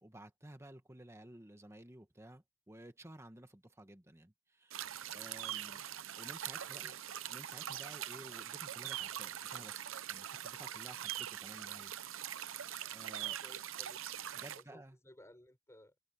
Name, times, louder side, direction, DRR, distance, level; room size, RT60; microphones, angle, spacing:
voice 1, 0.0-5.8 6.2-6.9 7.3-11.9 12.4-13.4 14.3-15.0, right 1 dB, 15° right, 1.4 m, -54 dB
sound 1, 4.7-14.6, right 11 dB, 75° right, 0.7 m, -43 dB
voice 2, 5.5-5.9 6.5-7.0 10.9-11.1 13.2-14.1 14.5-16.0, left 1 dB, 15° left, 7.2 m, -60 dB
head